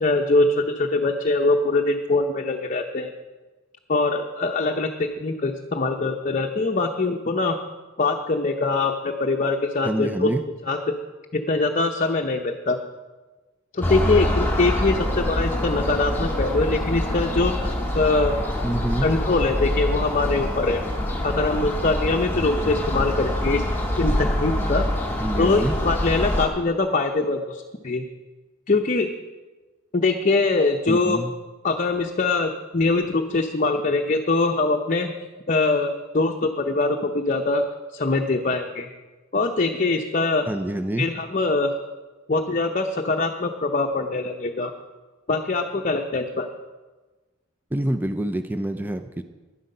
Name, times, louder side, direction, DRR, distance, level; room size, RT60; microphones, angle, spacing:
voice 1, 0.0-3.1 3.9-7.6 8.0-10.3 10.6-11.0 11.3-12.8 13.7-18.4 19.0-20.8 21.2-23.6 24.0-24.9 25.4-28.0 28.7-29.1 29.9-31.2 31.6-35.1 35.5-37.6 37.9-38.9 39.3-40.5 41.0-41.7 42.3-44.7 45.3-46.5, left 3 dB, 40° left, 3 dB, 0.7 m, -23 dB
voice 2, 9.8-10.4 18.6-19.1 25.2-25.7 30.9-31.3 40.5-41.1 47.7-49.2, right 1 dB, 10° right, 9 dB, 0.5 m, -26 dB
sound 1, 13.8-26.5, left 1 dB, 10° left, 2.1 m, -25 dB
11.5 x 11.0 x 5.5 m, 1.2 s
head